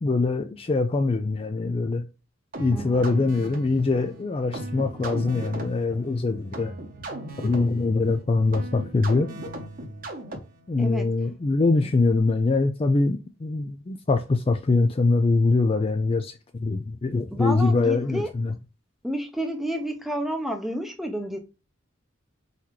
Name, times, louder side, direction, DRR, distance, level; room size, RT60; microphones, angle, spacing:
voice 1, 0.0-2.0 2.6-6.7 7.4-9.3 10.7-16.3 16.6-18.5, left 3 dB, 30° left, 0.4 m, -23 dB
sound 1, 2.5-10.7, right 1 dB, 45° right, 1.0 m, -37 dB
voice 2, 2.7-3.1 10.8-11.2 11.8-11.9 17.3-18.3 19.0-21.4, equal, ahead, 0.7 m, -30 dB
4.2 x 4.0 x 3.1 m
head